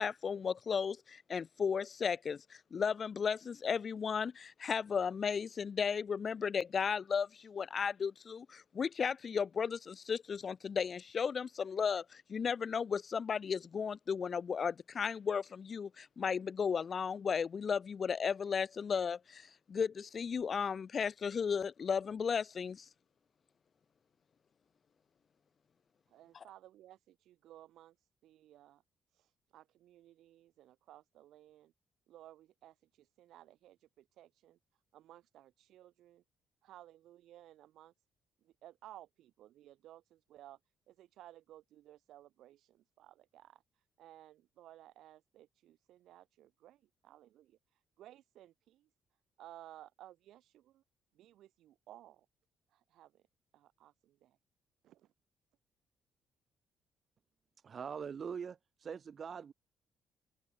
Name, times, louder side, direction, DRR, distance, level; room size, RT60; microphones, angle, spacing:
voice 1, 0.0-22.9 26.3-26.4, left 6 dB, 45° left, 1.4 m, -35 dB
voice 2, 26.1-27.9 28.2-28.8 29.1-31.7 32.1-34.6 34.9-36.2 36.6-37.9 38.4-40.6 40.9-43.6 44.0-47.6 48.0-48.9 49.4-50.8 51.2-52.2 52.7-53.2 53.5-54.4 54.8-55.0, right 13 dB, 80° right, 7.8 m, -57 dB
voice 3, 57.6-59.5, right 7 dB, 50° right, 4.6 m, -42 dB
open air
cardioid pair, 90°, 0 cm